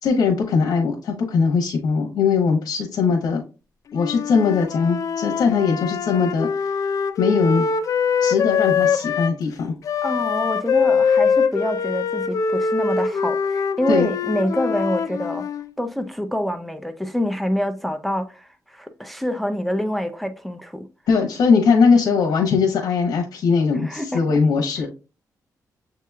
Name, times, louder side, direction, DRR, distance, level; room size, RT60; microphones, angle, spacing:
voice 1, 0.0-3.4 3.9-6.7 7.2-7.7 8.2-9.7 13.9-14.1 21.1-24.9, left 5 dB, 80° left, 1.0 m, -20 dB
Wind instrument woodwind instrument, 3.9-9.4 9.8-15.7, left 6 dB, 60° left, 0.4 m, -23 dB
voice 2, 10.0-15.5 15.8-20.9 23.8-24.2, equal, ahead, 0.4 m, -26 dB
7.1 x 2.9 x 2.3 m
cardioid pair, 115°, 7 cm